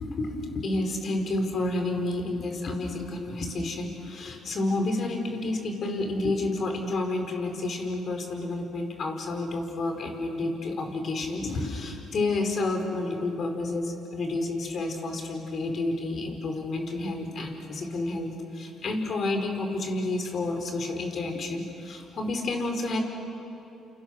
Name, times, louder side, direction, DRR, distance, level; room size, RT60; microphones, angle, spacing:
voice 1, 0.0-23.0, left 2 dB, 55° left, 3 dB, 5.0 m, -30 dB
29.5 x 28.5 x 6.7 m, 2.9 s
supercardioid pair, 60°, 0 cm